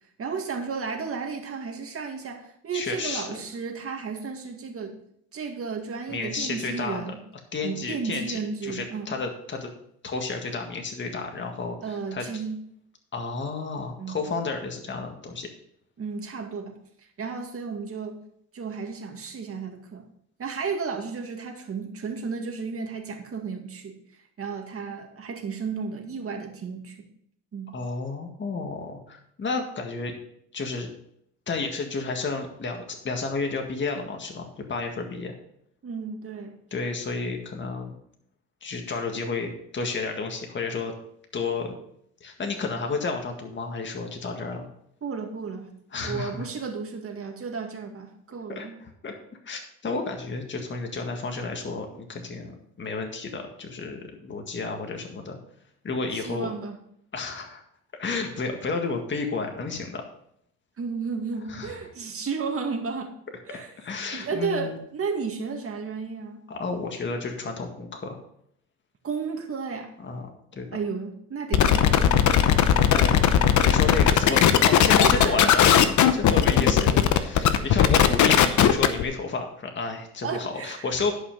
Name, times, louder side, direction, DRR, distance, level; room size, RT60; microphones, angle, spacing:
voice 1, 0.2-5.0 5.3-7.2 7.6-9.2 11.8-12.6 14.0-14.2 16.0-16.8 17.2-18.2 18.5-20.0 20.4-24.0 24.4-27.1 27.5-27.7 35.8-36.6 45.0-45.7 46.0-48.8 56.1-56.8 60.8-63.1 63.5-63.7 64.1-66.4 69.0-69.9 70.7-72.5 75.0-75.5 78.0-78.1 80.2-80.9, right 5 dB, 50° right, 3 dB, 2.1 m, -33 dB
voice 2, 2.7-3.4 6.1-7.0 7.5-9.7 10.0-12.3 13.1-15.5 27.7-30.1 30.5-30.9 31.5-35.3 36.7-38.0 38.6-40.9 41.3-41.7 42.2-44.7 45.9-46.5 48.5-49.2 49.5-55.4 55.8-56.5 57.1-57.6 58.0-60.0 61.5-61.8 63.5-64.8 66.5-68.2 70.0-70.7 72.9-73.2 73.6-81.1, left 4 dB, 40° left, 3 dB, 1.8 m, -31 dB
sound 1, 71.5-79.0, left 9 dB, 70° left, 0.9 m, -18 dB
11.0 x 5.7 x 5.3 m, 0.70 s
cardioid pair, 90°, 30 cm